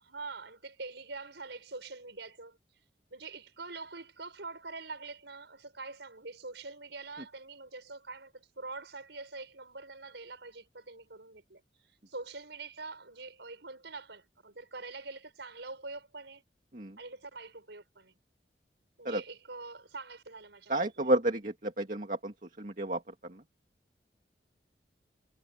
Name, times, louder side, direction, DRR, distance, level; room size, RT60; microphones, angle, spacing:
voice 1, 0.0-2.6 3.1-16.4 17.0-18.1 19.0-21.0, right 3 dB, 90° right, 5.7 m, -45 dB
voice 2, 20.7-23.4, right 1 dB, 50° right, 2.1 m, -31 dB
head